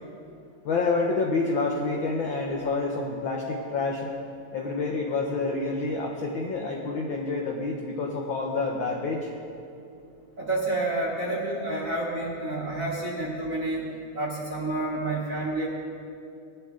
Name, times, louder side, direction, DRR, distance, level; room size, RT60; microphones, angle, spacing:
voice 1, 0.6-4.1 4.5-9.3, left 3 dB, 85° left, 0 dB, 1.1 m, -28 dB
voice 2, 10.4-13.8 14.1-15.7, right 2 dB, 45° right, -5 dB, 1.0 m, -29 dB
18.5 x 11.0 x 3.7 m, 2.6 s
omnidirectional pair, 3.5 m